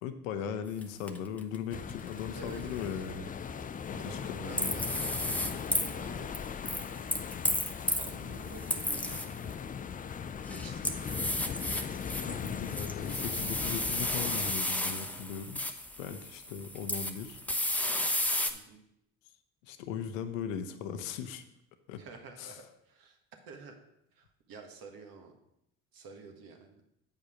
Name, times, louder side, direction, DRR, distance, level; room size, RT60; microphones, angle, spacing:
voice 1, 0.0-3.3 3.9-4.8 12.1-15.6 16.0-17.4 19.6-21.4 21.9-22.0 22.4-22.5, left 7 dB, 85° left, 9 dB, 0.7 m, -38 dB
sound 1, 0.8-0.9 1.1-2.1 4.6-5.9 6.3-8.1 8.5-9.5 10.3-18.5, left 1 dB, 5° left, 0.9 m, -33 dB
sound 2, 1.7-14.5, left 7 dB, 25° left, 0.4 m, -39 dB
voice 2, 2.3-3.0 3.9-7.3 7.8-9.7 10.5-11.4 18.5-18.8 21.9-23.2 23.5-23.8 24.1-25.4 25.9-26.8, right 4 dB, 65° right, 3 dB, 1.6 m, -50 dB
8.2 x 5.3 x 4.9 m, 0.81 s
hypercardioid pair, 60°, 38 cm